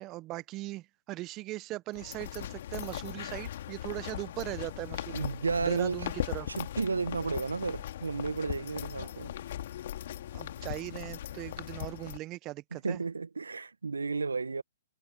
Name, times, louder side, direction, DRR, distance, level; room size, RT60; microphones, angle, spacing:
voice 1, 0.0-5.3 5.6-6.5 10.3-13.0, right 18 dB, 25° right, 0.6 m, -39 dB
sound 1, 1.9-12.2, left 11 dB, 55° left, 2.3 m, -39 dB
voice 2, 5.1-6.1 6.5-9.3 12.7-14.6, right 4 dB, 85° right, 1.0 m, -33 dB
hypercardioid pair, 130°, 0 cm